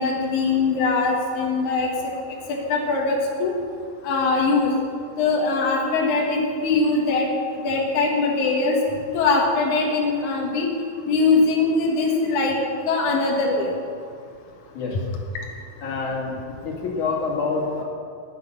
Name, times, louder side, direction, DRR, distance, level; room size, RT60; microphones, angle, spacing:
voice 1, 0.0-1.9 2.5-3.5 4.0-4.7 5.2-7.3 7.6-8.8 9.1-10.7 11.1-12.6 12.9-13.7, left 3 dB, 80° left, -1 dB, 1.7 m, -21 dB
voice 2, 15.8-17.8, left 4 dB, 50° left, -2 dB, 2.9 m, -27 dB
19.5 x 7.9 x 6.7 m, 2.2 s
omnidirectional pair, 5.9 m